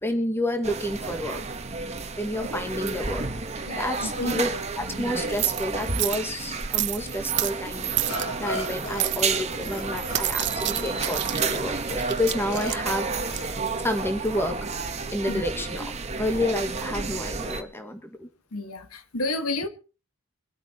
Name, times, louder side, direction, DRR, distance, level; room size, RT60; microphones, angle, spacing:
voice 1, 0.0-1.4 2.2-3.3 3.7-4.5 4.8-7.9 8.4-13.1 13.8-14.6 15.1-15.9 16.2-18.3, left 1 dB, 10° left, 1.7 m, -29 dB
sound 1, 0.6-17.6, right 4 dB, 30° right, 1.4 m, -31 dB
sound 2, 2.7-14.7, right 15 dB, 55° right, 0.7 m, -32 dB
voice 2, 3.7-4.4 15.3-15.4 18.5-19.7, left 2 dB, 90° left, 1.7 m, -31 dB
Burping eructation, 8.1-9.4 9.7-11.5 11.9-12.0 12.5-12.7 13.3-13.8, left 1 dB, 60° left, 3.7 m, -37 dB
25.0 x 8.4 x 4.4 m
head